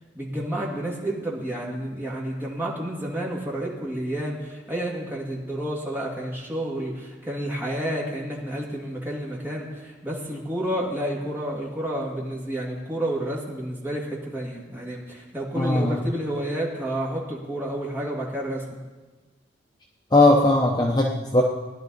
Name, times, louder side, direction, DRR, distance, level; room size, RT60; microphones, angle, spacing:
voice 1, 0.1-18.8, right 1 dB, 10° right, -4 dB, 2.1 m, -30 dB
voice 2, 15.6-16.1 20.1-21.4, left 2 dB, 20° left, 0 dB, 0.7 m, -19 dB
17.5 x 11.0 x 4.1 m, 1.3 s
head